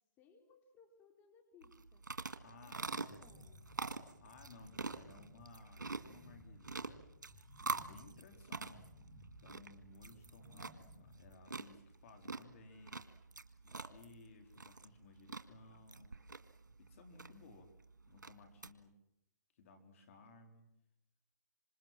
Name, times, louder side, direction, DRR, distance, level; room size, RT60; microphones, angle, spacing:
voice 1, 0.2-2.1 2.6-3.7, left 5 dB, 20° left, 3 dB, 4.1 m, -65 dB
sound 1, 1.6-18.7, right 3 dB, 90° right, 1.9 m, -46 dB
voice 2, 2.4-3.1 4.2-7.0 7.7-8.9 9.4-13.1 13.6-16.2 16.8-17.7 18.1-19.0 19.5-20.7, left 3 dB, 45° left, 6 dB, 4.2 m, -59 dB
sound 2, 2.8-11.3, left 1 dB, 5° left, 5.8 m, -59 dB
27.0 x 26.5 x 7.5 m, 0.81 s
hypercardioid pair, 145°, 10 cm